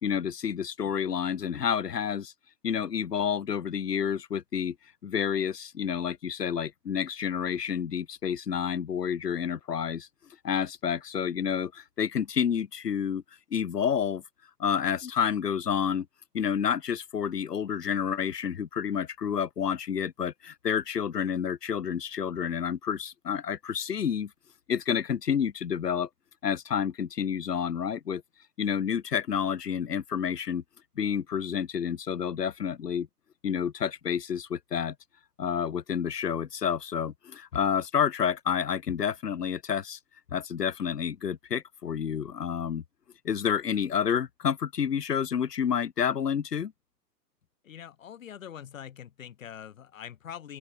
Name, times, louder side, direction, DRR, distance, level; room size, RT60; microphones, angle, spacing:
voice 1, 0.0-2.3 2.6-4.8 5.0-10.1 10.4-13.2 13.5-14.2 14.6-16.1 16.3-24.3 24.7-26.1 26.4-28.2 28.6-30.6 31.0-33.1 33.4-34.9 35.4-40.0 40.3-42.8 43.2-46.7, left 8 dB, 75° left, 0.9 m, -29 dB
voice 2, 47.6-50.6, left 9 dB, 50° left, 4.8 m, -43 dB
open air
figure-of-eight pair, 115°, 49 cm